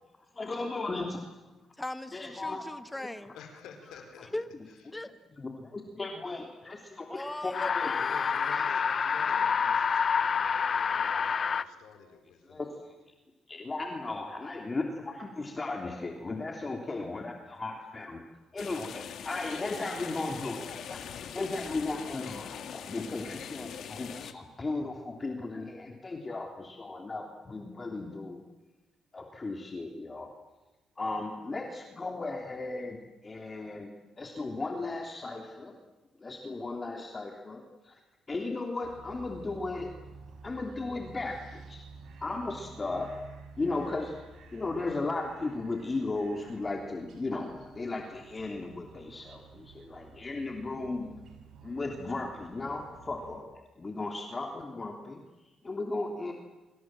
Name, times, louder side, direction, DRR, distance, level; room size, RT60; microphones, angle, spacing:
voice 1, 0.4-1.2 2.1-2.6 5.3-7.9 12.5-12.7 13.5-18.2 18.5-21.0 21.3-28.4 29.1-30.3 31.0-33.9 34.2-35.8 36.2-38.0 38.3-39.9 40.4-41.8 42.2-43.1 43.6-44.1 44.5-51.1 51.6-53.5 53.8-55.2 55.6-56.3, left 3 dB, 25° left, 3 dB, 3.1 m, -36 dB
voice 2, 1.8-3.3 4.3-4.5 4.9-5.1 7.1-8.7, left 1 dB, 10° left, 11 dB, 1.7 m, -39 dB
voice 3, 3.3-4.3 7.9-9.8 10.2-12.6, left 6 dB, 85° left, 5 dB, 4.8 m, -50 dB
sound 1, 7.5-11.6, left 6 dB, 45° left, 0.9 m, -28 dB
sound 2, 18.6-24.3, left 8 dB, 70° left, 2.0 m, -42 dB
sound 3, 38.8-53.4, right 4 dB, 70° right, 7.1 m, -51 dB
27.0 x 26.0 x 7.6 m, 1.1 s
cardioid pair, 90°, 0 cm